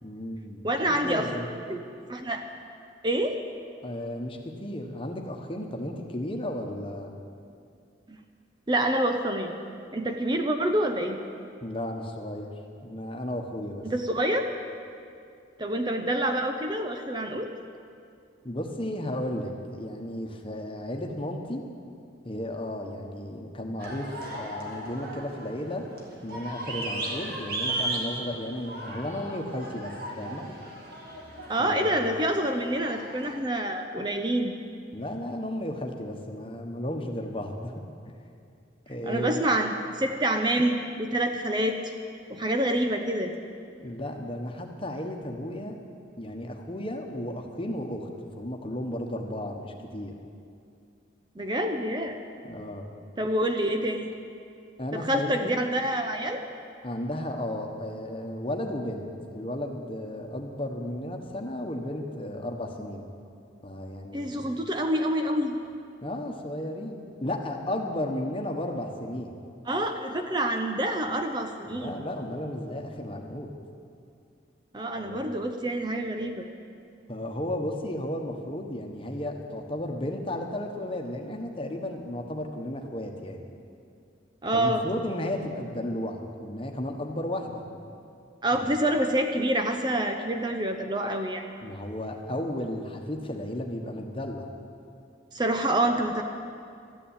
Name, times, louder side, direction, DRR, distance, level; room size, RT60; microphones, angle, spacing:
voice 1, 0.0-0.7 1.0-1.5 3.8-7.1 11.6-12.5 12.8-13.9 18.4-21.6 22.2-25.9 26.2-30.5 31.6-31.9 34.9-37.7 38.9-39.4 43.8-45.8 46.2-48.1 48.4-50.1 52.4-52.9 54.8-55.7 56.8-63.1 63.6-64.5 66.0-69.4 71.7-73.5 74.9-75.2 77.1-83.4 84.5-87.6 88.5-88.7 91.6-94.5, left 1 dB, 30° left, 2 dB, 1.3 m, -34 dB
voice 2, 0.6-1.3 1.7-1.8 2.1-2.4 3.0-3.4 8.7-9.5 9.9-11.2 13.8-14.4 15.6-17.5 31.5-34.5 39.1-41.8 42.3-43.3 51.4-52.2 53.2-54.1 54.9-56.4 64.1-65.6 69.7-71.9 74.7-76.5 84.4-84.8 88.4-91.4 95.3-96.2, right 1 dB, 25° right, 5 dB, 0.6 m, -27 dB
sound 1, 23.8-33.4, right 1 dB, 50° right, 2.2 m, -36 dB
13.5 x 10.0 x 8.9 m, 2.4 s
head